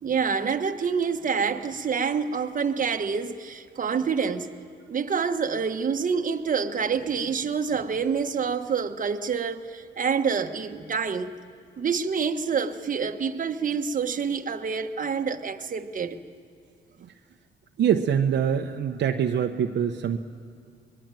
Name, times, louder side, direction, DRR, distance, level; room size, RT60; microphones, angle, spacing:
voice 1, 0.0-4.5 4.9-11.3 11.8-16.2, right 6 dB, 40° right, 1.4 m, -27 dB
voice 2, 17.8-20.2, right 8 dB, 60° right, 1.0 m, -24 dB
24.5 x 21.5 x 9.1 m
cardioid pair, 90°, 20 cm